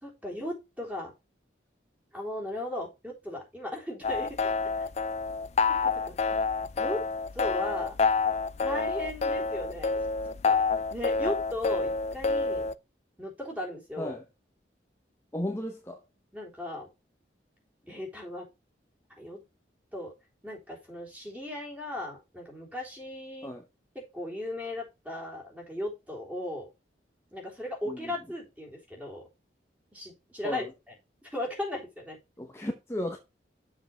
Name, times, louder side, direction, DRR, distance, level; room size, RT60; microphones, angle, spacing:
voice 1, 0.0-1.1 2.1-4.3 4.8-4.9 5.8-6.4 6.8-7.0 7.3-8.0 8.6-9.9 10.4-10.6 10.9-12.7 13.2-14.2 16.3-16.9 17.9-18.5 19.1-19.4 19.9-20.1 20.4-23.5 24.0-26.7 27.3-29.2 29.9-30.9 31.2-32.2, left 1 dB, 10° right, 3.6 m, -37 dB
sound 1, 4.0-12.7, left 4 dB, 35° left, 0.3 m, -28 dB
voice 2, 15.3-16.0 23.4-23.6 27.9-28.1 30.4-30.7 32.4-33.2, left 1 dB, 15° left, 0.9 m, -34 dB
7.4 x 5.9 x 4.4 m
head